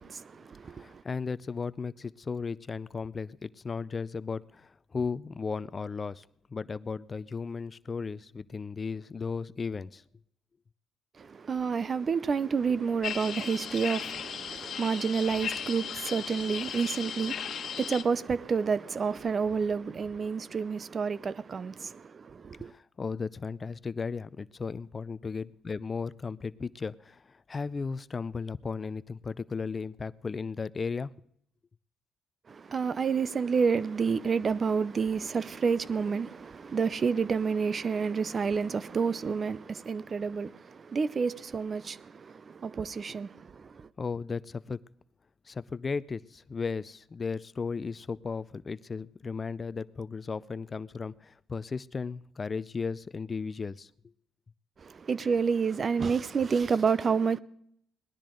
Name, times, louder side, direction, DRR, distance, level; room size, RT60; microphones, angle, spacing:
voice 1, 0.0-1.0 11.2-22.7 32.5-43.9 54.8-57.4, right 5 dB, 40° right, 0.5 m, -29 dB
voice 2, 0.6-10.0 22.6-31.1 44.0-44.8 45.5-53.9, left 5 dB, 35° left, 0.4 m, -35 dB
sound 1, 13.0-18.0, left 8 dB, 60° left, 1.3 m, -36 dB
19.5 x 12.0 x 3.8 m
cardioid pair, 90°, 0 cm